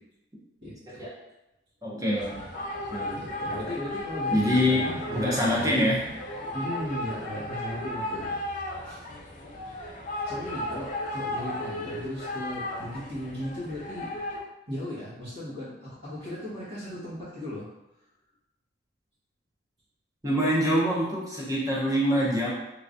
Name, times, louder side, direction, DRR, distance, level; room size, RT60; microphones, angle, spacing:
voice 1, 0.6-1.0 3.1-5.9 6.5-8.4 8.8-9.0 10.2-14.1 14.7-17.7, left 1 dB, 60° right, -15 dB, 1.4 m, -36 dB
voice 2, 1.8-2.4 2.9-3.1 4.3-6.0 20.2-22.5, equal, 15° right, -6 dB, 0.8 m, -25 dB
sound 1, 2.1-14.4, left 1 dB, 40° left, 0.5 m, -35 dB
3.3 x 2.9 x 2.5 m, 0.96 s
head